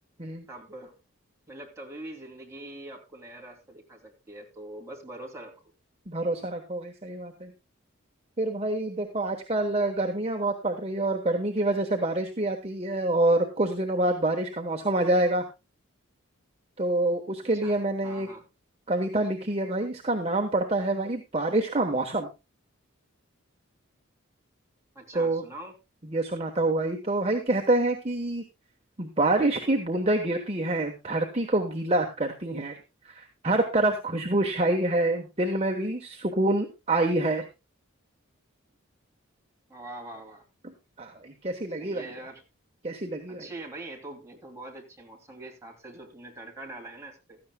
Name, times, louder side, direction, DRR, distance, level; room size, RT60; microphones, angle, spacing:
voice 1, 0.5-0.9 1.5-5.6 17.6-17.7 18.0-18.5 24.9-25.7 39.7-40.4 41.8-42.4 43.3-47.4, right 1 dB, 15° right, 0 dB, 2.7 m, -43 dB
voice 2, 6.1-7.5 8.4-15.4 16.8-18.3 18.9-22.3 25.1-25.4 26.1-28.4 29.0-32.8 33.0-37.4 40.6-42.1 42.8-43.5, right 2 dB, 30° right, 3 dB, 1.1 m, -26 dB
16.0 x 13.0 x 2.2 m, 0.26 s
head